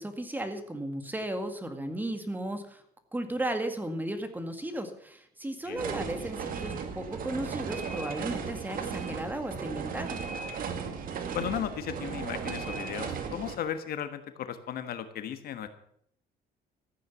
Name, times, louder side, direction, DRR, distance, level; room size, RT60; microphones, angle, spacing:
voice 1, 0.0-2.8 3.1-10.2, right 1 dB, 10° right, 7 dB, 1.9 m, -35 dB
sound 1, 5.8-13.6, right 6 dB, 55° right, 2.2 m, -36 dB
voice 2, 11.3-15.7, left 9 dB, 65° left, 9 dB, 1.4 m, -35 dB
14.0 x 9.3 x 7.0 m, 0.69 s
cardioid pair, 110°, 17 cm